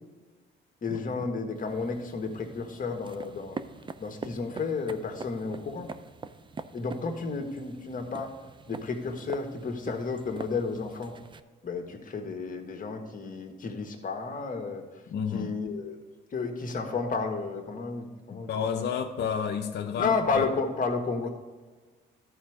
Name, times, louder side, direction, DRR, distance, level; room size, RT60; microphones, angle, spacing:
voice 1, 0.8-3.6 4.0-5.9 6.7-8.3 8.7-11.2 11.6-14.8 15.3-16.0 16.3-18.5 18.7-18.9 20.0-21.3, left 4 dB, 40° left, 4 dB, 1.5 m, -32 dB
sound 1, 1.6-11.4, right 4 dB, 25° right, 0.5 m, -44 dB
voice 2, 15.1-15.5 18.3-20.4, left 7 dB, 60° left, 3 dB, 0.7 m, -31 dB
13.0 x 4.4 x 4.9 m, 1.3 s
cardioid pair, 90°, 20 cm